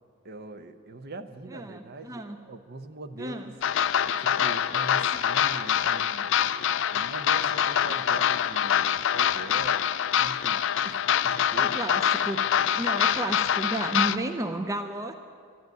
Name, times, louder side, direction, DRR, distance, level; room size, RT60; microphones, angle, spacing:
voice 1, 0.2-3.6 4.2-6.3 6.9-9.8 10.2-11.8, right 2 dB, 50° right, 9 dB, 0.7 m, -42 dB
voice 2, 1.5-2.4 3.2-3.5 11.6-12.4 12.6-15.1, right 1 dB, 15° right, 7 dB, 0.5 m, -32 dB
sound 1, 3.6-14.2, left 9 dB, 60° left, 0.4 m, -25 dB
12.0 x 12.0 x 9.4 m, 2.3 s
head